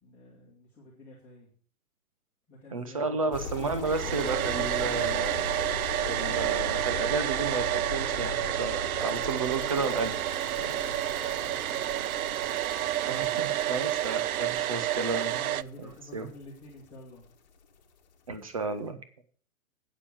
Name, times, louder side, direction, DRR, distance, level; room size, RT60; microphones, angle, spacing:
voice 1, 0.0-1.5 2.5-3.8 10.5-12.0 15.2-17.2, left 1 dB, 5° left, -9 dB, 1.7 m, -49 dB
voice 2, 2.7-5.4 6.1-10.1 13.0-15.4 15.8-16.3 18.3-19.0, right 4 dB, 25° right, 10 dB, 0.7 m, -32 dB
sound 1, 3.3-17.3 17.6-17.8, left 4 dB, 30° left, 1.6 m, -40 dB
Domestic sounds home sounds, 3.8-15.6, right 13 dB, 75° right, 0.5 m, -30 dB
8.9 x 7.3 x 7.1 m, 0.43 s
hypercardioid pair, 180°, 44 cm